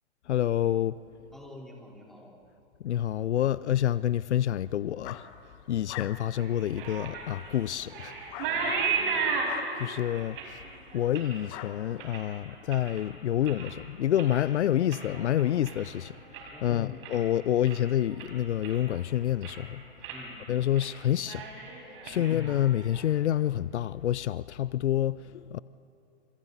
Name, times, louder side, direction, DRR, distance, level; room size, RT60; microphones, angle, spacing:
voice 1, 0.3-1.0 2.8-5.3 5.7-8.1 9.8-10.4 10.9-16.1 16.6-19.8 20.5-21.5 22.0-25.6, left 11 dB, 80° left, 0.6 m, -28 dB
voice 2, 1.3-2.4 8.4-9.3 16.5-17.0 20.1-20.4, left 1 dB, ahead, 3.8 m, -48 dB
sound 1, 5.0-10.5 11.0-11.2 11.5-12.0, left 11 dB, 35° left, 1.3 m, -45 dB
sound 2, 6.4-13.0 13.4-13.8 14.1-16.6 16.9-17.3 17.7-17.8 18.2-19.0 19.3-19.7 20.0-20.2 20.6-20.9 21.2-23.1, right 5 dB, 50° right, 5.6 m, -35 dB
28.5 x 27.5 x 4.1 m
hypercardioid pair, 130°, 34 cm